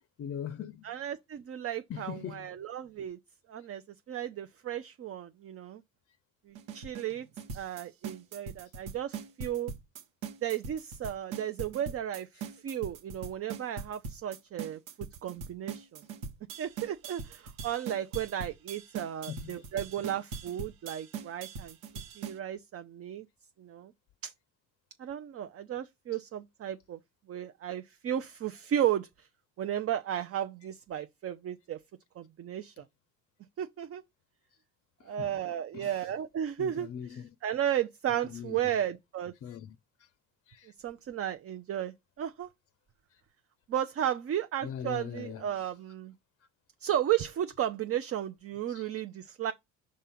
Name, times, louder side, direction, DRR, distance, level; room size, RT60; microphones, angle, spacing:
voice 1, 0.2-0.9 1.9-2.5 19.3-19.5 26.1-26.2 35.0-35.4 35.7-36.2 36.6-37.3 38.1-38.8 39.4-39.8 44.6-45.6 48.7-48.8, left 9 dB, 35° left, 0.6 m, -41 dB
voice 2, 0.8-3.2 3.5-3.8 4.1-5.8 6.5-7.3 7.5-9.7 10.4-16.0 16.6-21.8 22.2-23.3 23.6-23.9 24.2-24.3 25.0-27.0 27.3-29.3 29.6-31.8 32.2-32.8 33.6-34.0 35.0-39.3 40.8-42.5 43.7-46.1 46.8-49.5, right 10 dB, 35° right, 0.6 m, -34 dB
sound 1, 6.6-22.4, right 5 dB, 85° right, 1.3 m, -41 dB
5.4 x 3.7 x 5.6 m
hypercardioid pair, 75°, 41 cm